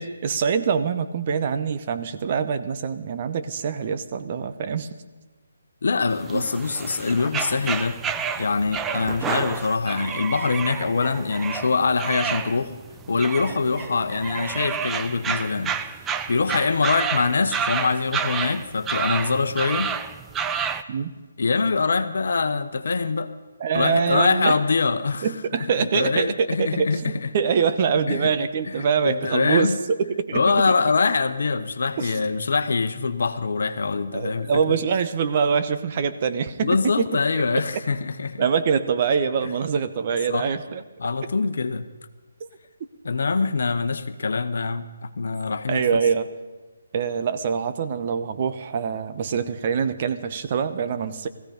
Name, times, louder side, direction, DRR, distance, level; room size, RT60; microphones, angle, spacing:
voice 1, 0.0-4.9 6.3-6.5 20.9-21.1 23.6-24.6 25.2-30.7 32.0-32.3 34.1-37.1 37.3-37.4 38.4-40.8 45.7-46.3 46.9-51.3, right 6 dB, 40° right, 10 dB, 0.9 m, -24 dB
voice 2, 5.8-8.0 8.4-12.7 13.1-15.8 16.3-19.9 21.4-23.3 23.7-25.3 25.8-27.3 28.1-28.3 28.7-29.8 30.3-34.8 36.6-38.4 40.3-40.5 41.0-41.9 43.0-45.8, left 4 dB, 65° left, 10 dB, 1.0 m, -24 dB
sound 1, 6.1-20.8, right 7 dB, 10° right, 0.5 m, -30 dB
17.0 x 15.0 x 5.2 m, 1.2 s
figure-of-eight pair, 150°, 0 cm